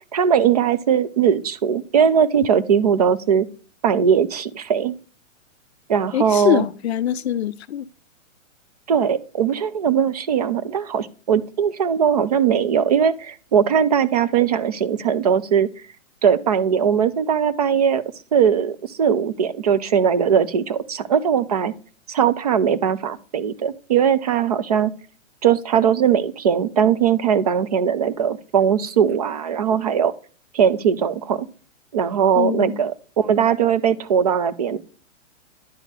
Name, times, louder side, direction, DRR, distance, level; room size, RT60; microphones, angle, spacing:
voice 1, 0.1-3.5 3.8-4.9 5.9-6.7 8.9-15.7 16.2-18.0 18.3-21.7 22.1-24.9 25.4-30.1 30.5-31.5 31.9-34.8, right 7 dB, 30° right, 0.4 m, -19 dB
voice 2, 6.1-7.9 32.4-32.8, left 11 dB, 55° left, 0.5 m, -23 dB
11.0 x 4.2 x 3.3 m
hypercardioid pair, 150°, 39 cm